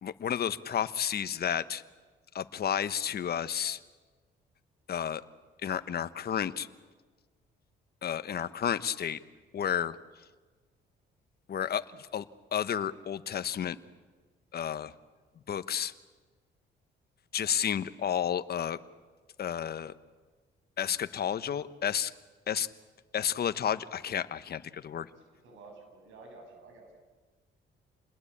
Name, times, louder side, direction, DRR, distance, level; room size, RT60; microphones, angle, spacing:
voice 1, 0.0-1.8 2.3-3.8 4.9-5.2 5.6-6.7 8.0-9.2 9.5-10.0 11.5-12.2 12.5-13.8 14.5-14.9 15.5-15.9 17.3-18.8 19.4-19.9 20.8-22.1 22.5-22.7 23.1-25.1, left 9 dB, 55° left, 13 dB, 1.1 m, -31 dB
voice 2, 25.1-26.9, right 3 dB, 85° right, 3 dB, 7.7 m, -52 dB
28.5 x 21.0 x 8.6 m, 1.4 s
cardioid pair, 90°, 20 cm